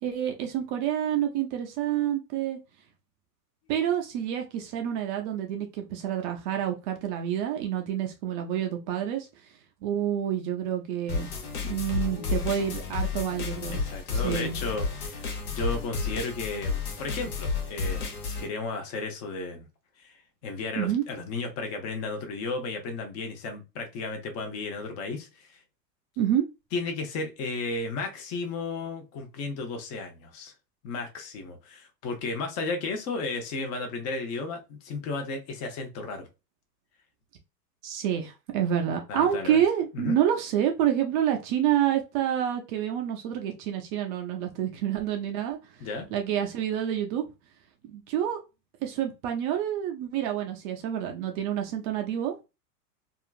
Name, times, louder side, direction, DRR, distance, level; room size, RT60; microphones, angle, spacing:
voice 1, 0.0-2.6 3.7-9.3 9.8-11.3 11.6-13.8 14.1-14.6 20.8-21.0 26.2-26.4 37.8-45.6 46.1-47.2 47.9-48.4 48.8-52.3, right 10 dB, 30° right, 0.4 m, -28 dB
sound 1, 11.1-18.5, left 5 dB, 65° left, 1.1 m, -31 dB
voice 2, 11.9-12.5 13.7-19.7 20.0-20.2 20.4-25.6 26.7-30.5 30.8-36.3 39.1-39.6 39.9-40.2 45.8-46.1, left 3 dB, 30° left, 0.8 m, -34 dB
2.8 x 2.4 x 2.4 m
hypercardioid pair, 105°, 49 cm